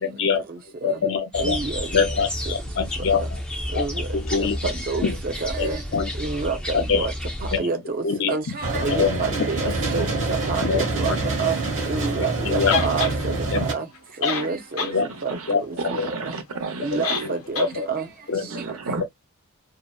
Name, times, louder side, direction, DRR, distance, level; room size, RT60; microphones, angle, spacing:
voice 1, 0.0-0.4 0.8-1.6 1.9-3.4 3.7-3.8 4.1-4.6 5.0-5.1 5.6-6.1 6.7-7.1 7.5-7.7 8.0-8.4 8.7-9.2 10.0-10.1 10.6-10.8 12.5-12.8 13.5-13.6 14.2-14.3 14.9-15.1 15.5-15.6 15.9-16.1 17.2-17.3 17.7-17.9 18.3-18.5, left 5 dB, 60° left, 0.5 m, -24 dB
sound 1, 1.3-7.6, equal, 5° left, 0.5 m, -31 dB
voice 2, 1.4-1.9 3.7-4.1 4.6-5.1 5.4-5.8 6.2-7.1 7.6-8.0 8.3-9.6 9.9-10.1 10.5-11.1 11.4-11.6 11.9-13.8 14.2-14.9 15.2-15.4 16.8-18.0, right 4 dB, 40° right, 0.6 m, -27 dB
sound 2, 8.6-13.7, right 2 dB, 60° right, 1.1 m, -26 dB
sound 3, 12.7-13.2 13.9-14.0 14.2-15.0 15.3-15.4 17.0-17.3 17.5-17.7, left 5 dB, 90° left, 0.7 m, -27 dB
voice 3, 15.0-15.5 15.8-17.3 18.5-19.0, right 3 dB, 75° right, 0.8 m, -32 dB
2.7 x 2.1 x 2.3 m
head